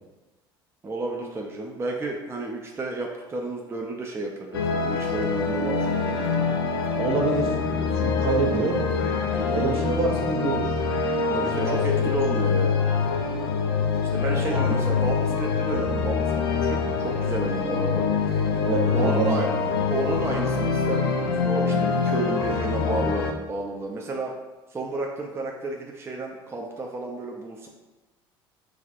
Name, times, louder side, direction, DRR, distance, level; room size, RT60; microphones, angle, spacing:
voice 1, 0.8-6.5 8.0-8.2 9.3-9.6 11.3-12.8 14.1-18.1 18.9-19.5 19.9-24.3 24.7-27.7, right 2 dB, 20° right, 0 dB, 0.5 m, -32 dB
sound 1, 4.5-23.3, left 5 dB, 85° left, 0.4 m, -25 dB
voice 2, 6.9-8.8 9.5-10.7 11.3-12.2 14.4-14.8 17.6-17.8 18.6-19.6, right 4 dB, 55° right, 0 dB, 0.8 m, -27 dB
4.8 x 3.1 x 2.5 m, 1.1 s
hypercardioid pair, 65°, 12 cm